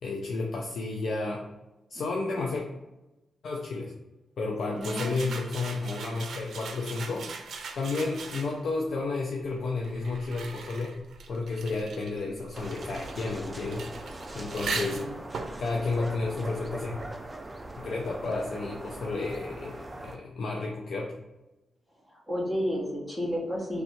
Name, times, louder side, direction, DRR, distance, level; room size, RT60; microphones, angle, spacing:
voice 1, 0.0-1.5 1.9-2.6 3.4-3.9 4.4-7.3 7.8-11.0 11.3-13.9 14.3-15.0 15.6-17.0 17.8-19.8 20.0-21.2, left 3 dB, 65° left, -1 dB, 0.5 m, -31 dB
voice 2, 4.7-5.2 14.6-15.1 22.3-23.8, equal, 10° left, -4 dB, 1.1 m, -32 dB
sound 1, 4.8-8.8 9.5-17.0, right 4 dB, 80° right, 0.5 m, -40 dB
sound 2, 12.5-20.2, right 2 dB, 20° right, 0.4 m, -41 dB
3.2 x 2.6 x 4.5 m, 1.0 s
wide cardioid pair, 155°, 0 cm